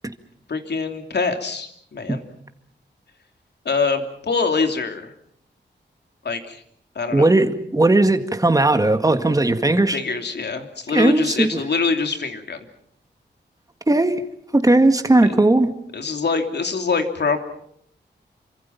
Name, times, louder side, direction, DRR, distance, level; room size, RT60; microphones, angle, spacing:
voice 1, 0.5-2.2 3.6-5.1 6.2-6.6 6.9-7.3 9.9-12.6 15.2-15.4 15.9-17.4, left 4 dB, 65° left, 6 dB, 3.0 m, -24 dB
voice 2, 7.1-10.0 10.9-11.5 13.9-14.2 14.5-15.7, right 2 dB, 20° right, 8 dB, 1.9 m, -17 dB
28.5 x 25.5 x 5.9 m, 0.69 s
wide cardioid pair, 135°, 19 cm